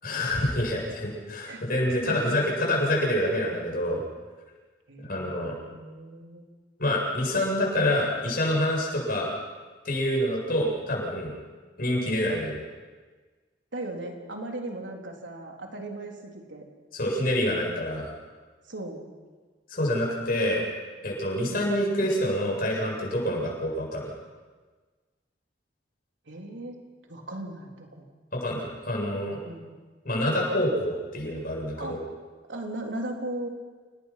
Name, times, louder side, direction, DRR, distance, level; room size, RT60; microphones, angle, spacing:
voice 1, 0.0-4.0 5.0-5.6 6.8-9.3 9.8-11.3 11.8-12.6 16.9-18.1 19.7-20.6 21.0-24.1 28.3-29.4 30.0-32.0, left 1 dB, 50° left, -2 dB, 7.9 m, -27 dB
voice 2, 4.9-6.4 13.7-16.6 18.7-19.1 21.5-21.9 26.3-26.8 27.1-28.1 29.4-29.7 31.7-32.1 32.5-33.5, right 1 dB, 85° right, 1 dB, 3.7 m, -37 dB
29.5 x 19.0 x 6.0 m, 1.4 s
head